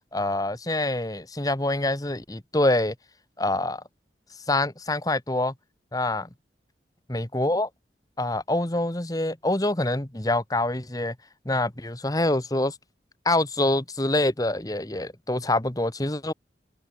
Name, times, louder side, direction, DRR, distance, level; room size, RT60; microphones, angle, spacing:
voice 1, 0.1-2.9 3.4-3.8 4.5-5.5 5.9-6.3 7.1-7.7 8.2-11.1 11.4-12.8 13.2-16.3, left 2 dB, 20° left, 1.5 m, -25 dB
head